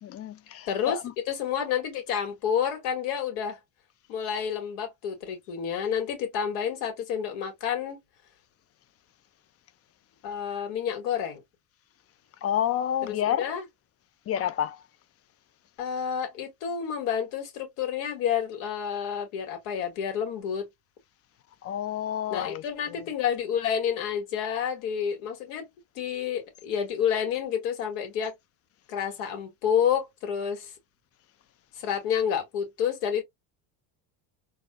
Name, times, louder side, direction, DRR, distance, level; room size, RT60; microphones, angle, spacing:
voice 1, 0.0-1.1 12.4-13.5 14.3-14.9 21.6-23.1, left 10 dB, 35° left, 0.4 m, -30 dB
voice 2, 0.7-1.0 1.3-3.6 4.1-8.0 10.2-11.4 13.1-13.6 15.8-20.7 22.3-25.7 26.0-28.3 28.9-30.7 31.8-33.2, left 8 dB, 85° left, 2.2 m, -29 dB
4.1 x 2.5 x 2.5 m
supercardioid pair, 110°, 44 cm